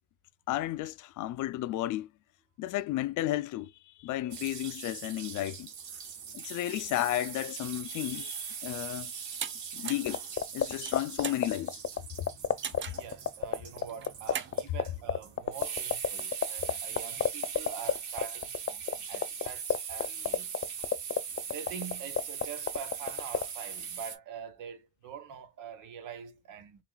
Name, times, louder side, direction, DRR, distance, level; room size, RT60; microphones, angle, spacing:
voice 1, 0.5-2.1 2.6-3.7 4.0-5.7 6.3-9.1 9.7-10.2 10.5-11.8, left 14 dB, 80° left, 0.5 m, -33 dB
sound 1, 4.3-24.2, right 7 dB, 75° right, 1.7 m, -41 dB
sound 2, 9.4-9.5 9.8-10.1 10.7-11.4 12.6-13.1 13.9-14.5, right 8 dB, 40° right, 0.6 m, -37 dB
sound 3, 10.1-23.4, left 9 dB, 45° left, 0.7 m, -26 dB
voice 2, 13.0-20.5 21.5-26.8, right 7 dB, 90° right, 1.1 m, -44 dB
5.8 x 2.5 x 2.2 m
cardioid pair, 90°, 30 cm